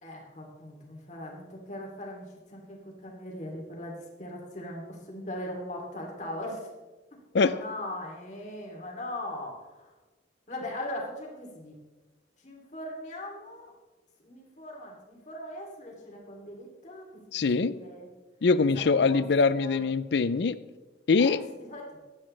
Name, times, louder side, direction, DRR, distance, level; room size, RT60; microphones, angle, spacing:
voice 1, 0.0-6.7 7.3-9.9 10.5-11.7 12.4-13.7 14.2-17.2 17.6-18.1 18.6-19.2 19.6-19.8 21.2-21.3 21.6-22.0, left 1 dB, 40° left, -1 dB, 2.9 m, -40 dB
voice 2, 17.3-17.7 18.4-20.6 21.1-21.4, left 4 dB, 65° left, 16 dB, 0.5 m, -23 dB
16.0 x 11.5 x 3.3 m, 1.2 s
head